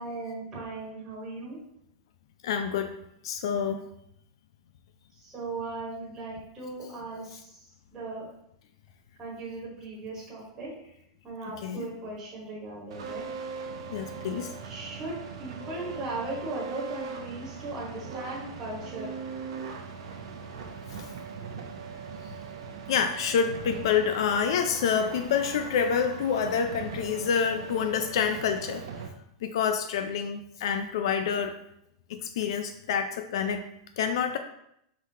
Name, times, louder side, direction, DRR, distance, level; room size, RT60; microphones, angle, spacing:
voice 1, 0.0-1.6 5.1-8.2 9.2-10.9 11.2-13.3 14.6-19.1, right 2 dB, 15° right, -6 dB, 1.1 m, -38 dB
voice 2, 2.4-2.9 3.2-3.9 11.6-11.9 13.9-14.5 21.0-21.1 22.9-28.8 29.4-31.5 32.2-33.7 34.0-34.4, left 7 dB, 65° left, 7 dB, 0.3 m, -27 dB
sound 1, 12.9-29.1, right 5 dB, 85° right, 0.7 m, -40 dB
4.7 x 3.7 x 2.8 m, 0.76 s
supercardioid pair, 175°, 3 cm